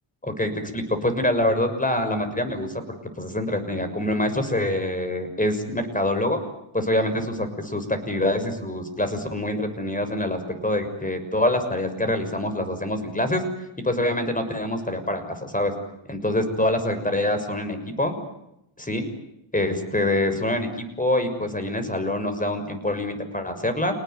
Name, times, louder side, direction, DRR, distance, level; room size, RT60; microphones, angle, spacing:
voice 1, 0.2-2.7 3.2-6.4 6.7-13.4 13.8-15.7 16.1-18.1 18.8-19.1 19.5-23.9, left 1 dB, 15° left, 8 dB, 6.5 m, -25 dB
29.0 x 19.5 x 9.4 m, 0.82 s
cardioid pair, 75°, 50 cm